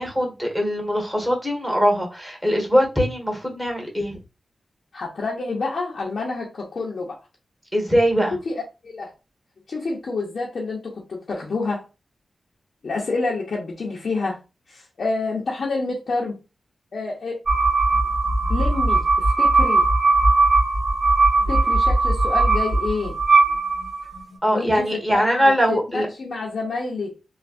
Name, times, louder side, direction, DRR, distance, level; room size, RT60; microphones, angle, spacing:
voice 1, 0.0-4.2 7.7-8.4 21.4-21.5 24.4-26.1, equal, 5° right, 1.5 m, -21 dB
voice 2, 4.9-7.2 8.3-9.1 9.7-11.9 12.8-14.4 14.7-16.4 16.9-17.4 18.5-19.9 21.5-23.2 24.5-27.2, left 3 dB, 70° left, 0.7 m, -28 dB
sound 1, 17.5-24.2, right 3 dB, 50° right, 1.5 m, -19 dB
3.3 x 2.3 x 2.5 m
cardioid pair, 45°, 0 cm